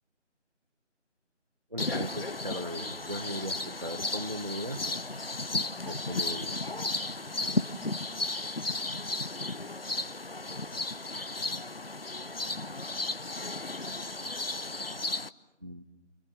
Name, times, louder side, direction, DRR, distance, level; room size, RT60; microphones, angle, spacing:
voice 1, 1.7-4.8 5.8-6.6 15.6-15.8, equal, 30° right, 4 dB, 0.9 m, -38 dB
sound 1, 1.8-15.3, left 2 dB, 50° left, 0.8 m, -34 dB
voice 2, 10.9-11.5, equal, ahead, -14 dB, 1.8 m, -64 dB
29.5 x 27.5 x 6.3 m, 0.95 s
figure-of-eight pair, 170°, 36 cm